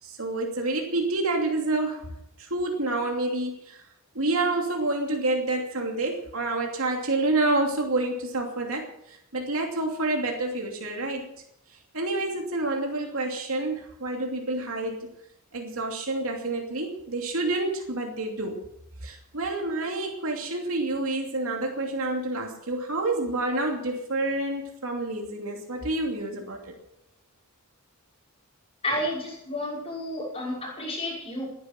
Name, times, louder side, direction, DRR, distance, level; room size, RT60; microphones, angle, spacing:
voice 1, 0.0-2.1 2.4-3.8 4.1-11.3 11.9-15.1 15.5-18.6 19.0-26.7, right 2 dB, 75° right, 1 dB, 2.8 m, -28 dB
voice 2, 28.8-31.5, left 1 dB, 25° left, -3 dB, 5.9 m, -31 dB
20.0 x 10.0 x 6.0 m, 0.78 s
head